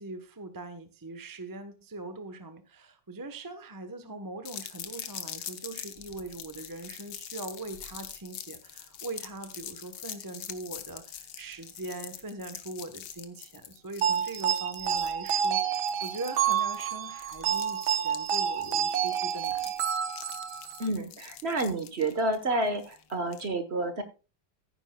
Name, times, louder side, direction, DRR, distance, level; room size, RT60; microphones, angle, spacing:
voice 1, 0.0-19.7, right 2 dB, 20° right, 9 dB, 0.5 m, -41 dB
sound 1, 4.5-23.5, left 10 dB, 75° left, 1.8 m, -44 dB
sound 2, 14.0-20.9, right 8 dB, 80° right, 1.7 m, -29 dB
voice 2, 20.8-24.0, right 2 dB, 40° right, 10 dB, 1.2 m, -29 dB
15.0 x 9.6 x 2.3 m, 0.32 s
omnidirectional pair, 2.1 m